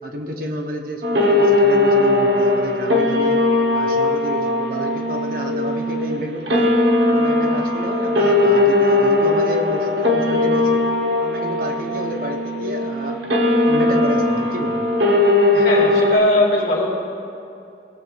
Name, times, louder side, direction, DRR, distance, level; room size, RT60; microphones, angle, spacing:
voice 1, 0.0-3.5 3.7-6.8 7.1-10.8 11.2-13.2 13.6-14.8, equal, 50° right, 2 dB, 0.9 m, -30 dB
sound 1, 1.0-16.2, left 2 dB, 75° right, 1.1 m, -18 dB
voice 2, 15.5-16.9, left 1 dB, 70° left, -3 dB, 2.2 m, -19 dB
19.0 x 7.8 x 2.5 m, 2.6 s
head